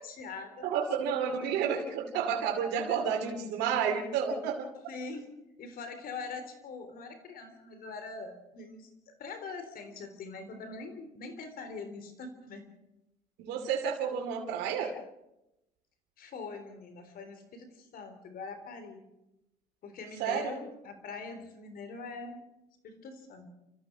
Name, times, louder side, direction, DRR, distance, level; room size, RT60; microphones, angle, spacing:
voice 1, 0.0-0.7 1.2-1.6 4.9-12.7 16.2-19.1 19.8-22.4 22.8-23.5, left 4 dB, 60° left, 8 dB, 3.7 m, -43 dB
voice 2, 0.6-4.7 13.4-14.9 20.2-20.5, right 7 dB, 85° right, 0 dB, 2.6 m, -30 dB
30.0 x 14.5 x 6.1 m, 0.92 s
cardioid pair, 110°, 17 cm